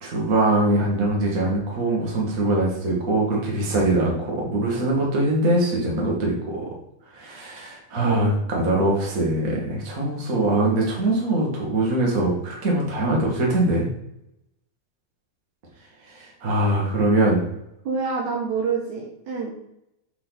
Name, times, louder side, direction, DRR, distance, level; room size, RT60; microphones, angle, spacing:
voice 1, 0.0-6.6 7.1-13.9 16.1-17.4, right 1 dB, 30° right, -2 dB, 1.9 m, -22 dB
voice 2, 8.0-8.4 17.9-19.5, right 5 dB, 65° right, -2 dB, 2.3 m, -26 dB
7.3 x 5.9 x 4.1 m, 0.80 s
omnidirectional pair, 4.0 m